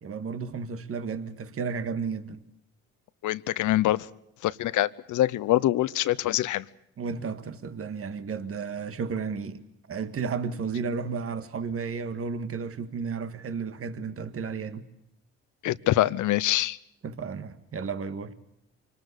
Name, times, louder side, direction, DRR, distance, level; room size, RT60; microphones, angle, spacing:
voice 1, 0.0-2.4 7.0-9.6 9.9-14.8 17.0-18.3, right 5 dB, 50° right, 1.8 m, -33 dB
voice 2, 3.2-4.1 4.4-6.6 15.6-16.8, left 14 dB, 80° left, 0.9 m, -24 dB
25.5 x 19.0 x 8.3 m
cardioid pair, 90°, 30 cm